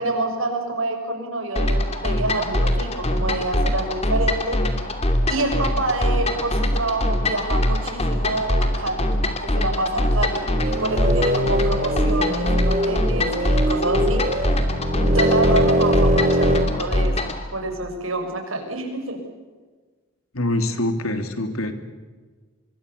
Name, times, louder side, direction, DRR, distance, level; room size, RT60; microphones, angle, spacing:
voice 1, 0.0-4.6 5.3-14.2 15.1-19.2, right 2 dB, 75° right, 4 dB, 6.0 m, -27 dB
sound 1, 1.6-17.4, left 1 dB, 30° left, 2.7 m, -23 dB
sound 2, 10.5-16.7, equal, 35° right, 2.1 m, -22 dB
voice 2, 20.3-21.7, left 1 dB, 85° left, 8 dB, 3.0 m, -24 dB
25.5 x 23.5 x 6.9 m, 1.4 s
head